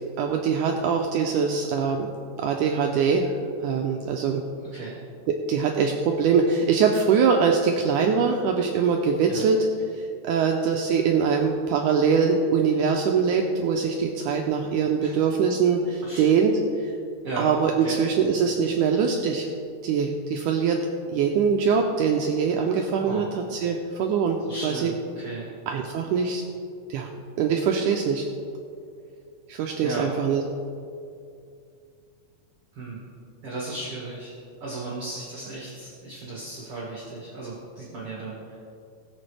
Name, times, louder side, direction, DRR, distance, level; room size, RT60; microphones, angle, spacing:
voice 1, 0.2-2.1 2.4-3.3 3.6-4.4 5.3-9.7 10.2-16.5 16.8-16.9 17.4-19.5 19.8-20.8 21.1-24.9 25.7-26.4 26.9-27.1 27.4-28.2 29.5-30.4, right 6 dB, 85° right, 2 dB, 1.8 m, -23 dB
voice 2, 23.0-23.4 24.4-25.5 29.8-30.1 32.7-33.0 33.4-34.3 34.6-38.6, right 2 dB, 45° right, -5 dB, 2.1 m, -35 dB
19.5 x 6.9 x 3.3 m, 2.5 s
omnidirectional pair, 4.3 m